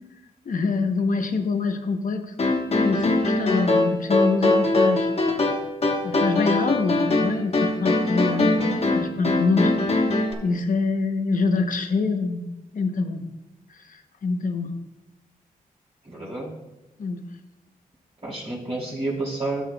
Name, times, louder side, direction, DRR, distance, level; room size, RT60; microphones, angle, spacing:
voice 1, 0.5-2.3 2.8-5.1 5.4-5.5 6.0-8.5 8.9-9.7 10.4-12.4 12.7-13.2 13.7-14.7 17.0-17.2, left 4 dB, 65° left, 6 dB, 0.8 m, -25 dB
sound 1, 2.4-10.3, left 2 dB, 45° left, 1.1 m, -22 dB
voice 2, 8.3-8.7 16.0-16.5 18.2-19.6, right 2 dB, 45° right, -8 dB, 2.7 m, -30 dB
13.0 x 6.5 x 2.2 m, 1.0 s
cardioid pair, 75°, 15 cm